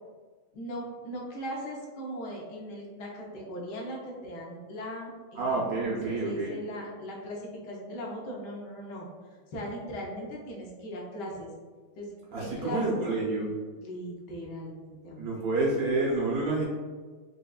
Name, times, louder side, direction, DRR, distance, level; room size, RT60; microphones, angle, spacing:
voice 1, 0.5-9.1 9.5-11.5 12.0-12.1 12.4-13.0 13.8-15.3, equal, 65° left, -2 dB, 1.2 m, -39 dB
voice 2, 5.3-6.6 12.3-13.5 15.2-16.7, right 2 dB, 70° right, -4 dB, 0.8 m, -28 dB
4.8 x 2.3 x 2.3 m, 1.4 s
omnidirectional pair, 2.2 m